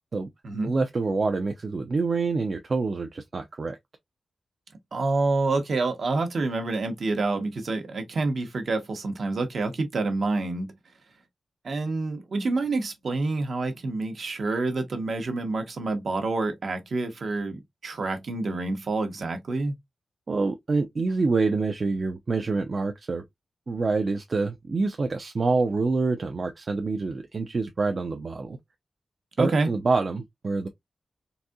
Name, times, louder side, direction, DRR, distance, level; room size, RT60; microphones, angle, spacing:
voice 1, 0.6-3.8 20.3-23.2 23.7-28.6 29.4-30.7, right 3 dB, 40° right, 0.4 m, -26 dB
voice 2, 4.9-10.7 11.6-19.8 29.4-29.7, right 3 dB, 60° right, 0.9 m, -27 dB
4.0 x 2.6 x 2.3 m
wide cardioid pair, 155°, 0 cm